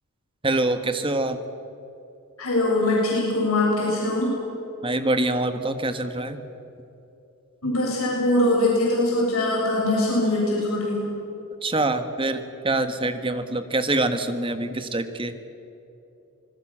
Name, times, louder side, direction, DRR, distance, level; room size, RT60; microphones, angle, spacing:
voice 1, 0.4-1.4 4.8-6.4 11.6-15.3, right 2 dB, 25° right, 9 dB, 1.4 m, -25 dB
voice 2, 2.4-4.3 7.6-11.0, left 1 dB, 75° left, -4 dB, 7.4 m, -22 dB
26.0 x 20.5 x 7.5 m, 3.0 s
head